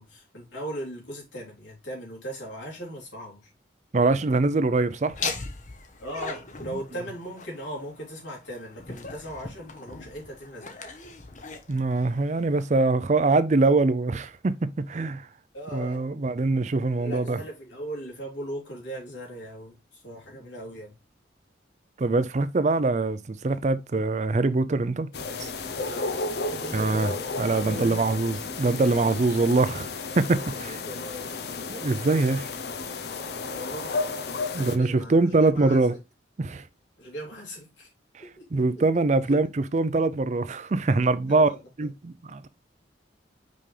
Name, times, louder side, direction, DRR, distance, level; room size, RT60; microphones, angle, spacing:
voice 1, 0.0-3.5 6.0-10.8 15.5-16.1 17.0-20.9 25.8-26.2 26.5-27.2 27.5-28.0 30.4-31.3 33.5-35.9 37.0-37.9 38.2-38.8 39.3-39.4 41.3-41.9, right 1 dB, 85° left, 3.2 m, -39 dB
voice 2, 3.9-5.2 11.7-15.3 15.7-17.4 22.0-25.1 25.4-25.5 26.7-29.9 30.2-30.8 31.7-32.5 34.5-35.9 36.4-36.6 38.5-39.5 39.7-41.5 41.8-42.5, right 3 dB, 40° right, 0.4 m, -23 dB
Laughter, 5.1-12.7, left 4 dB, 40° left, 1.0 m, -39 dB
sound 1, 25.1-34.8, left 3 dB, 60° left, 0.7 m, -33 dB
5.6 x 5.2 x 3.3 m
head